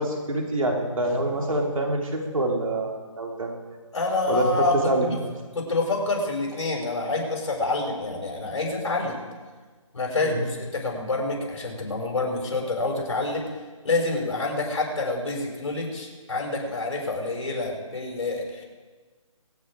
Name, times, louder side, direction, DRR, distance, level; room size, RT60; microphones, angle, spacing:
voice 1, 0.0-3.5 4.3-4.5 4.8-5.1 10.2-10.4, right 1 dB, 75° right, 1 dB, 4.1 m, -26 dB
voice 2, 3.9-5.2 5.5-9.2 9.9-13.4 13.8-18.6, left 2 dB, 55° left, -1 dB, 6.0 m, -27 dB
24.5 x 9.0 x 5.0 m, 1.4 s
hypercardioid pair, 180°, 17 cm